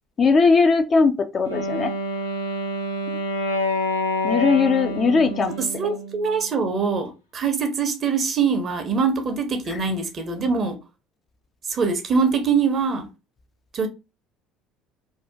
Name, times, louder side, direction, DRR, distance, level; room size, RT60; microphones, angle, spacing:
voice 1, 0.2-1.9 4.2-5.5, left 4 dB, 35° left, 0.5 m, -19 dB
Wind instrument woodwind instrument, 1.5-6.5, left 1 dB, 85° left, 0.6 m, -27 dB
voice 2, 5.6-10.8 11.7-13.1 13.7-13.9, right 5 dB, 40° right, 0.8 m, -23 dB
2.7 x 2.4 x 3.5 m
figure-of-eight pair, 60°, 0 cm